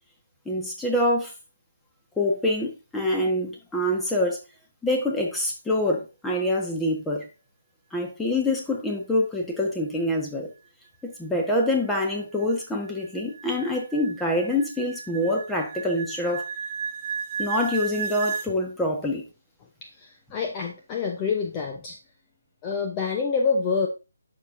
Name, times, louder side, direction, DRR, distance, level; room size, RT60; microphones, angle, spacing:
voice 1, 0.4-1.3 2.2-4.4 4.8-7.3 7.9-10.5 11.0-16.4 17.4-19.2, left 1 dB, 5° left, 1.4 m, -25 dB
sound 1, 11.3-18.5, right 6 dB, 20° right, 0.9 m, -34 dB
voice 2, 19.8-22.0 22.6-23.9, left 5 dB, 20° left, 0.8 m, -27 dB
9.6 x 6.6 x 2.6 m
figure-of-eight pair, 160°, 0 cm